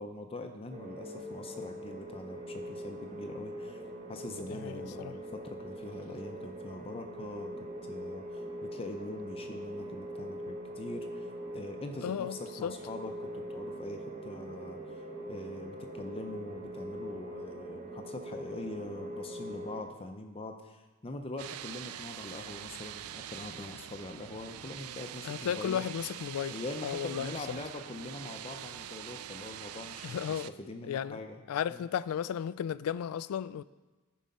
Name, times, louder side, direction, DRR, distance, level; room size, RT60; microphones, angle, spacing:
voice 1, 0.0-3.8 4.1-7.5 7.8-15.0 15.3-25.8 26.5-31.4 31.7-31.9, left 2 dB, 25° left, 0.5 m, -43 dB
sound 1, 0.7-19.8, right 1 dB, 35° right, 1.0 m, -42 dB
voice 2, 4.5-5.1 12.0-12.7 25.2-26.6 26.8-27.3 30.0-30.5 30.9-31.2 31.5-33.6, left 8 dB, 80° left, 0.3 m, -34 dB
sound 2, 21.4-30.5, right 11 dB, 85° right, 0.3 m, -44 dB
11.5 x 4.7 x 5.4 m
head